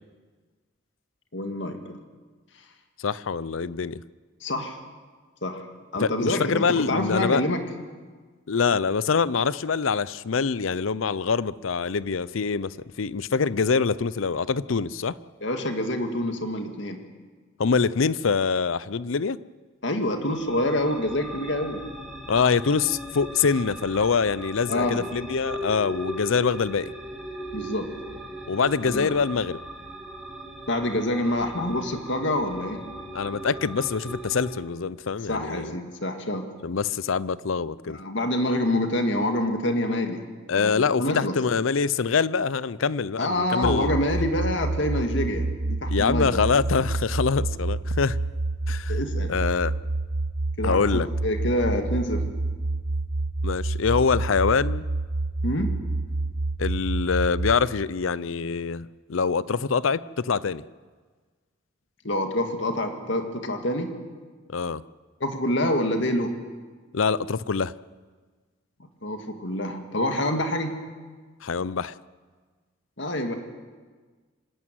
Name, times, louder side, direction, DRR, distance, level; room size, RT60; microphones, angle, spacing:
voice 1, 1.3-2.0 4.4-4.8 5.4-5.6 5.9-7.6 15.4-17.0 19.8-21.8 24.7-25.0 27.5-27.9 28.8-29.1 30.7-32.8 35.3-36.4 37.9-40.2 40.6-41.4 43.2-46.4 48.9-49.4 50.6-52.2 55.4-55.7 62.0-63.9 65.2-66.3 69.0-70.7 73.0-73.4, left 1 dB, 65° left, 5 dB, 2.1 m, -26 dB
voice 2, 3.0-4.0 6.0-7.4 8.5-15.2 17.6-19.4 22.3-26.9 28.5-29.6 33.1-35.7 36.6-38.0 40.5-43.9 45.9-48.2 48.7-49.0 49.3-49.7 50.6-51.1 53.4-54.9 56.6-60.6 64.5-64.8 66.9-67.7 71.4-71.9, left 5 dB, 85° left, 19 dB, 0.6 m, -25 dB
sound 1, 20.2-34.5, right 1 dB, 5° right, 2.9 m, -38 dB
sound 2, 43.6-57.6, right 2 dB, 55° right, 1.1 m, -28 dB
26.0 x 12.5 x 9.2 m, 1.4 s
head